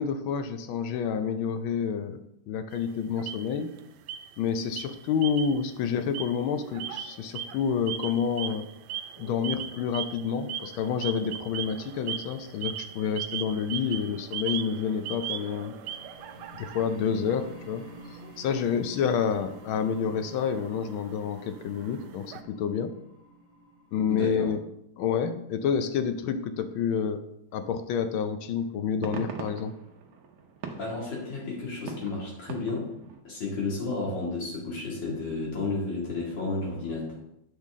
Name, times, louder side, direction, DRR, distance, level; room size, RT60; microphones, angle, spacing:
voice 1, 0.0-2.2 2.5-3.7 4.4-8.7 9.2-15.7 16.6-17.9 18.4-22.9 23.9-24.6 25.0-27.2 27.5-29.7, left 7 dB, 75° left, 9 dB, 1.5 m, -29 dB
sound 1, 2.7-3.8 4.1-4.5 4.8-5.7 6.0-22.4, right 9 dB, 90° right, 1.5 m, -39 dB
sound 2, 11.1-24.0, equal, 25° left, 1.3 m, -52 dB
sound 3, 27.9-28.1 28.6-33.2, right 5 dB, 60° right, 1.1 m, -42 dB
voice 2, 30.8-32.9 33.2-37.1, left 3 dB, 60° left, -3 dB, 2.9 m, -32 dB
8.6 x 5.8 x 3.6 m, 0.79 s
omnidirectional pair, 2.3 m